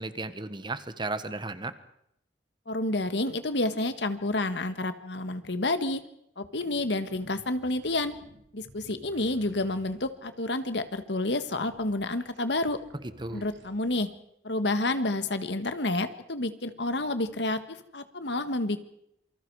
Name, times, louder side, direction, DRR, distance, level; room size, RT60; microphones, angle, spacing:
voice 1, 0.0-1.7 13.2-13.5, right 2 dB, 25° right, 12 dB, 1.4 m, -34 dB
voice 2, 2.7-6.0 6.4-8.2 8.5-12.8 13.3-14.1 14.4-18.8, left 2 dB, 75° left, 10 dB, 1.7 m, -29 dB
sound 1, 6.6-14.0, right 1 dB, 90° right, 2.8 m, -55 dB
27.5 x 24.5 x 4.9 m, 0.76 s
head